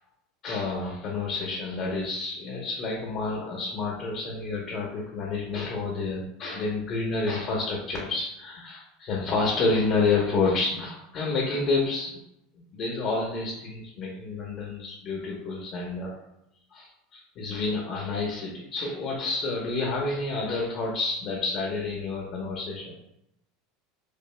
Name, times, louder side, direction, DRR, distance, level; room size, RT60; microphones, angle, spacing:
voice 1, 0.4-12.1 12.7-16.1 16.7-22.9, left 3 dB, 50° left, -2 dB, 0.9 m, -29 dB
5.1 x 2.2 x 2.2 m, 0.82 s
supercardioid pair, 105°, 0 cm